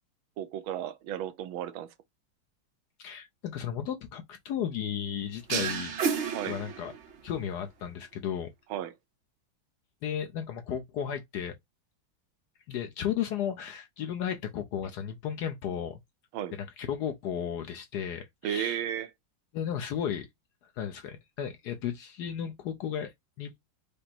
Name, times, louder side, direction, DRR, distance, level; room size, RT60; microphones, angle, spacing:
voice 1, 0.4-1.9 6.3-6.6 8.7-8.9 16.3-16.5 18.4-19.1, right 10 dB, 85° right, 1.5 m, -34 dB
voice 2, 3.0-6.0 6.5-6.9 7.2-8.5 10.0-11.5 12.7-16.0 16.5-18.8 19.5-20.3 20.8-23.6, left 9 dB, 70° left, 1.0 m, -34 dB
sound 1, 5.5-7.3, right 6 dB, 60° right, 0.7 m, -31 dB
5.1 x 2.0 x 4.2 m
omnidirectional pair, 2.2 m